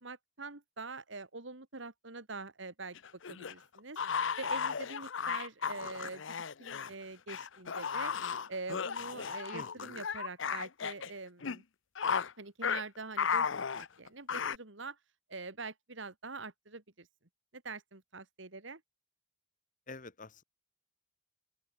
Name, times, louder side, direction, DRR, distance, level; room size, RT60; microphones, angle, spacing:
voice 1, 0.0-3.0 3.3-4.0 4.4-6.2 6.6-8.1 8.5-11.6 12.4-15.0 15.3-17.1 17.5-18.8, right 3 dB, 60° right, 2.1 m, -44 dB
sound 1, 2.9-6.9 7.3-11.1 11.4-11.6 11.9-12.3 12.6-12.8 13.2-14.6, left 6 dB, 65° left, 0.7 m, -35 dB
voice 2, 9.5-9.9 19.9-20.4, left 3 dB, 40° left, 1.4 m, -47 dB
open air
head